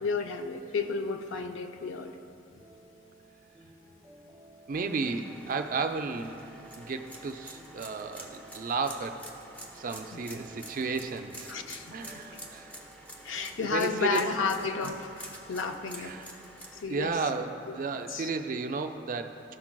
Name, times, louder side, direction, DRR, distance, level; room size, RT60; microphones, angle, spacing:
voice 1, 0.0-2.2 10.1-10.2 11.5-12.2 13.2-16.1 16.8-17.2 17.7-18.3, left 4 dB, 75° left, 6 dB, 0.5 m, -32 dB
sound 1, 2.6-14.2, right 2 dB, 15° right, 1.0 m, -57 dB
sound 2, 4.7-16.8, right 1 dB, 10° left, 0.6 m, -48 dB
voice 2, 4.7-6.4 6.8-9.2 9.7-11.5 11.9-12.7 13.3-14.5 16.0-16.3 16.9-19.4, right 4 dB, 45° right, 7 dB, 0.3 m, -33 dB
13.5 x 5.9 x 2.2 m, 2.7 s
head